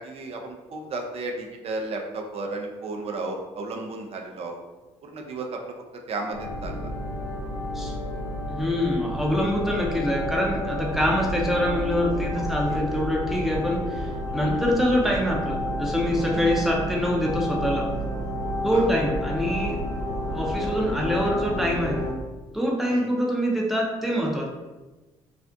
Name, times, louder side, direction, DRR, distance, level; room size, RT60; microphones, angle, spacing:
voice 1, 0.0-4.6 5.0-5.7 6.1-6.9 12.4-12.8 16.3-16.5 18.7-18.9 22.9-23.1, right 3 dB, 45° right, 2 dB, 0.5 m, -34 dB
sound 1, 6.3-22.1, equal, 85° left, 0.8 m, -30 dB
voice 2, 8.5-17.9 18.6-19.8 20.2-22.0 22.5-24.5, equal, ahead, -2 dB, 0.6 m, -25 dB
2.5 x 2.0 x 2.5 m, 1.2 s
hypercardioid pair, 50°, 15 cm